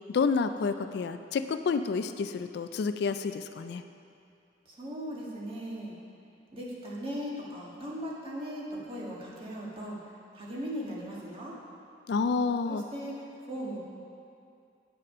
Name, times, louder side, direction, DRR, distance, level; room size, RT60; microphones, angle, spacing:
voice 1, 0.1-3.8 12.1-12.8, left 4 dB, 65° left, 10 dB, 0.3 m, -29 dB
voice 2, 4.6-6.0 6.5-10.0 10.3-11.6 12.6-13.8, equal, 30° right, -5 dB, 1.7 m, -38 dB
9.0 x 6.6 x 5.5 m, 2.5 s
head